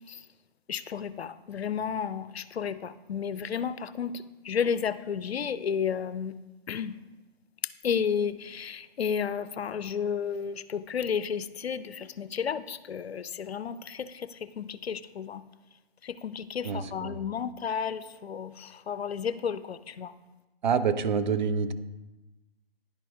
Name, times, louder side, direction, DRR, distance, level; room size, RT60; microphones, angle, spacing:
voice 1, 0.7-6.4 6.7-7.0 7.8-15.4 16.0-20.1, left 7 dB, 90° left, 14 dB, 0.5 m, -32 dB
voice 2, 16.6-17.2 20.6-21.7, right 6 dB, 50° right, 11 dB, 0.5 m, -27 dB
10.5 x 4.9 x 2.4 m, 1.1 s
figure-of-eight pair, 135°, 30 cm